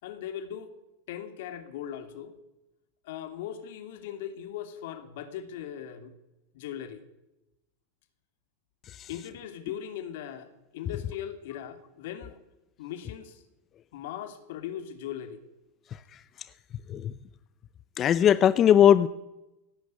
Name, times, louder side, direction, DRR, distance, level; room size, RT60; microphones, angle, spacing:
voice 1, 0.0-0.7 1.1-2.4 3.0-6.1 6.5-7.0 9.1-12.4 12.8-13.4 13.9-15.4, left 10 dB, 70° left, 9 dB, 3.0 m, -39 dB
voice 2, 15.9-16.2 16.9-17.1 18.0-19.1, left 10 dB, 35° left, 15 dB, 0.7 m, -20 dB
18.5 x 16.5 x 9.7 m, 0.95 s
supercardioid pair, 125°, 0 cm